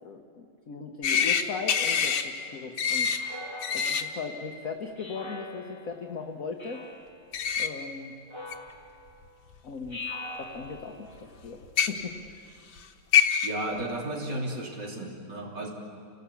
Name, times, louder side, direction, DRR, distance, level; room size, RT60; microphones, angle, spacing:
voice 1, 0.0-3.1 3.7-6.8 7.6-8.1 9.6-10.1 10.4-11.1 11.4-11.6 11.9-12.4, left 4 dB, 45° left, 2 dB, 1.5 m, -38 dB
sound 1, 1.0-1.4 1.7-2.2 2.8-3.2 3.6-4.0 7.3-7.7 8.5-8.6 9.8-9.9 11.6-11.9 12.8-12.9 13.1-13.5, left 7 dB, 70° left, 2.0 m, -24 dB
Speech synthesizer, 3.1-4.3 5.0-6.0 6.6-7.3 8.3-9.2 9.9-11.1, left 2 dB, 15° left, 2.0 m, -42 dB
voice 2, 13.4-15.7, right 1 dB, 55° right, -1 dB, 4.0 m, -34 dB
29.5 x 18.5 x 8.5 m, 2.5 s
omnidirectional pair, 2.2 m